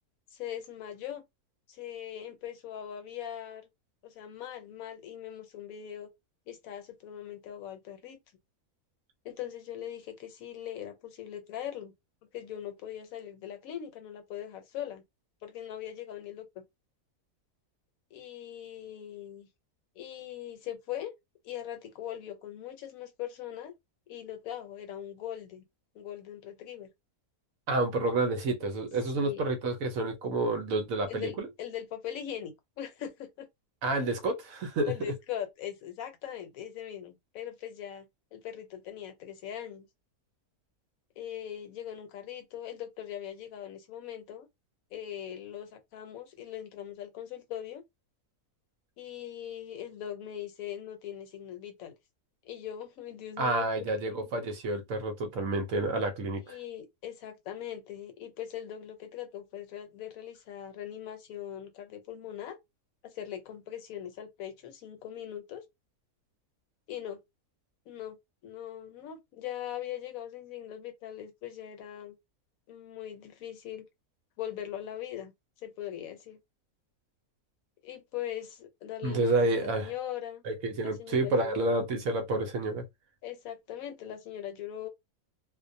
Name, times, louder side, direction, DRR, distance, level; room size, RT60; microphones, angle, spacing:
voice 1, 0.3-1.2 1.7-3.7 4.0-6.1 6.5-8.2 9.2-11.9 12.3-15.0 15.4-16.6 18.1-19.5 20.0-21.1 21.4-23.7 24.1-25.6 25.9-26.9 29.2-29.5 31.1-33.5 34.9-39.9 41.2-44.5 44.9-47.8 49.0-51.9 52.4-54.3 56.4-62.6 63.0-65.6 66.9-67.2 67.9-68.2 68.4-72.1 72.7-73.9 74.4-75.3 75.6-76.4 77.8-80.4 80.8-81.6 83.2-84.9, left 10 dB, 70° left, 1.1 m, -41 dB
voice 2, 27.7-31.5 33.8-34.9 53.4-56.6 79.0-79.9 80.4-82.8, right 2 dB, 70° right, 1.0 m, -29 dB
2.5 x 2.2 x 2.5 m
omnidirectional pair, 1.5 m